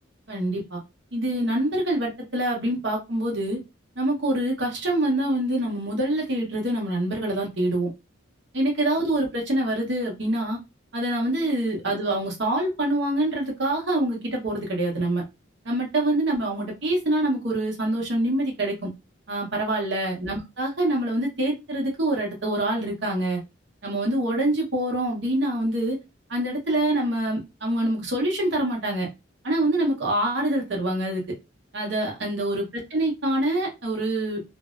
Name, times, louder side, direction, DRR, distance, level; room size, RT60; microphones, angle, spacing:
voice 1, 0.3-0.8 1.1-3.6 4.0-7.9 8.5-10.6 10.9-15.2 15.6-18.9 19.3-23.4 23.8-26.0 26.3-29.1 29.4-31.2 31.7-32.6 32.9-34.4, right 1 dB, 55° right, 0.9 m, -25 dB
2.5 x 2.1 x 2.4 m
head